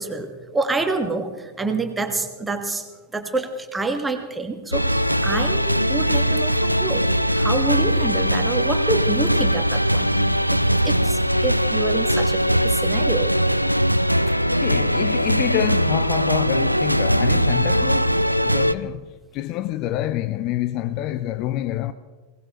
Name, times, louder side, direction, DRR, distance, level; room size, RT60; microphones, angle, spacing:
voice 1, 0.0-2.8 3.1-13.3, right 3 dB, 10° right, 1.5 m, -27 dB
sound 1, 4.7-18.7, equal, 90° right, 0.4 m, -20 dB
voice 2, 14.5-18.2 18.4-19.1 19.3-21.9, left 13 dB, 40° left, 0.5 m, -27 dB
21.0 x 18.5 x 3.0 m
figure-of-eight pair, 90°, 0 cm